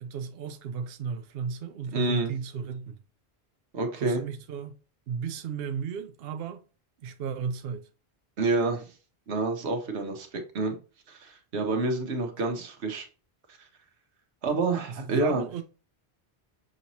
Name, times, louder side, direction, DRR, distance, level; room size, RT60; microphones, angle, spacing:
voice 1, 0.0-3.0 4.0-4.8 5.1-6.6 7.0-7.9 14.9-15.6, right 6 dB, 70° right, 0.7 m, -34 dB
voice 2, 1.9-2.3 3.7-4.2 8.4-8.9 9.3-10.8 11.1-13.1 14.4-15.4, right 3 dB, 90° right, 1.3 m, -28 dB
6.3 x 3.0 x 2.7 m
omnidirectional pair, 1.1 m